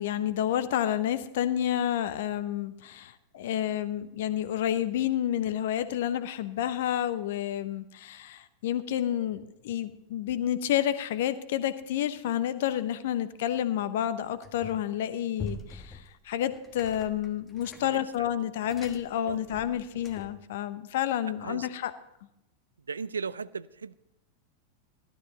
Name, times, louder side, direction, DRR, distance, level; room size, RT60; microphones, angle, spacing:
voice 1, 0.0-21.9, left 11 dB, 55° left, 13 dB, 0.9 m, -30 dB
sound 1, 14.4-14.9 15.4-20.5, left 3 dB, 15° left, 1.2 m, -44 dB
voice 2, 17.8-18.5 19.2-19.5 21.4-21.7 22.9-23.9, right 5 dB, 75° right, 17 dB, 0.4 m, -37 dB
14.5 x 12.5 x 4.0 m, 0.86 s
figure-of-eight pair, 90°, 0 cm